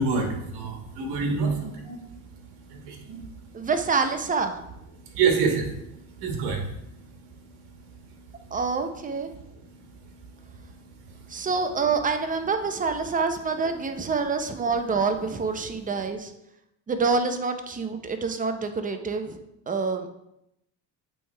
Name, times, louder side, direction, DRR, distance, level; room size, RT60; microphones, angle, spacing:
voice 1, 0.0-3.7 4.9-8.6 9.3-11.5, right 4 dB, 75° right, 2 dB, 1.4 m, -30 dB
voice 2, 3.5-4.6 8.5-9.3 11.3-16.3 16.9-19.4 19.7-20.1, right 4 dB, 20° right, 7 dB, 0.6 m, -26 dB
8.4 x 3.4 x 3.3 m, 0.84 s
supercardioid pair, 100°, 39 cm